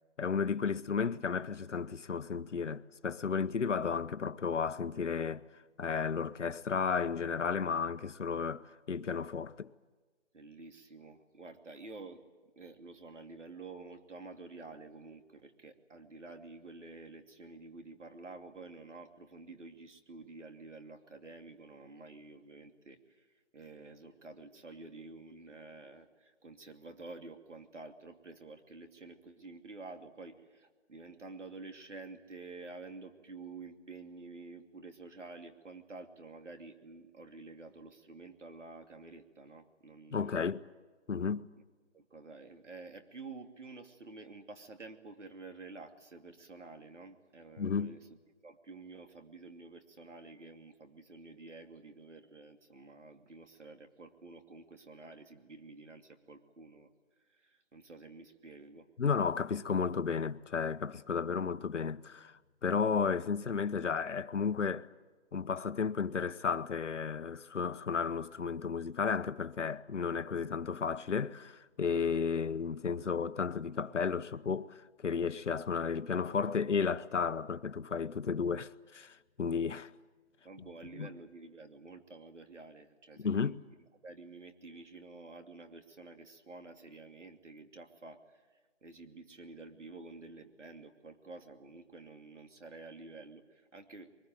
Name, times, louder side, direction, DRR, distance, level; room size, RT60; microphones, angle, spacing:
voice 1, 0.2-5.4 5.8-9.7 40.1-40.6 41.1-41.5 47.6-47.9 59.0-64.9 65.3-79.9 81.0-81.1 83.2-83.6, left 6 dB, 85° left, 1.0 m, -33 dB
voice 2, 10.3-12.2 12.6-23.3 23.5-40.5 41.9-48.1 48.4-56.9 57.3-58.9 80.4-83.5 84.0-88.5 88.8-94.2, right 3 dB, 90° right, 2.8 m, -50 dB
23.0 x 21.0 x 9.3 m
hypercardioid pair, 175°, 35 cm